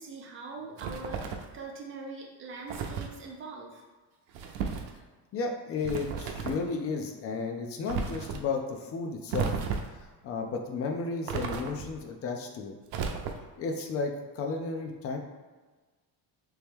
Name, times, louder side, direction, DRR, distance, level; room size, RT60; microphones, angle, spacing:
voice 1, 0.0-3.8, right 3 dB, 30° right, 0 dB, 0.7 m, -42 dB
sound 1, 0.8-1.5 2.7-3.1 4.3-4.9 5.8-6.7 7.9-8.4 9.3-10.0 11.3-12.0 12.9-13.6, right 6 dB, 80° right, 0.6 m, -34 dB
voice 2, 5.3-9.5 10.2-12.7 13.6-15.2, left 4 dB, 35° left, 3 dB, 0.5 m, -33 dB
3.3 x 3.0 x 3.5 m, 1.3 s
cardioid pair, 160°, 40 cm